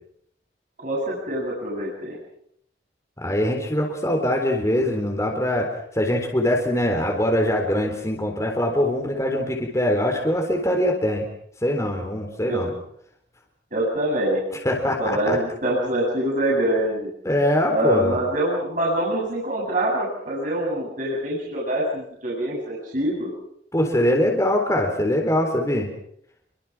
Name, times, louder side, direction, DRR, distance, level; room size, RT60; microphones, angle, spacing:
voice 1, 0.8-2.2 12.4-12.6 13.7-14.4 15.0-17.1 17.7-23.3, right 1 dB, 50° right, -4 dB, 8.0 m, -25 dB
voice 2, 3.2-11.2 11.6-12.7 14.6-15.4 17.2-18.2 23.7-25.9, left 1 dB, 15° left, 1 dB, 3.9 m, -22 dB
27.5 x 24.5 x 6.1 m, 0.69 s
head